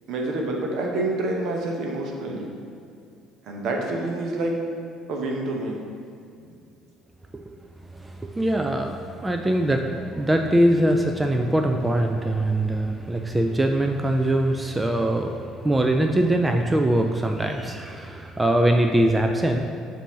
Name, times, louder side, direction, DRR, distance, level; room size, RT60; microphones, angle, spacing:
voice 1, 0.1-2.5 3.4-4.6 5.1-5.8, right 2 dB, 60° right, 0 dB, 0.9 m, -27 dB
voice 2, 7.8-19.7, right 1 dB, 15° right, 4 dB, 0.4 m, -22 dB
7.1 x 2.7 x 5.5 m, 2.4 s
figure-of-eight pair, 55°, 0 cm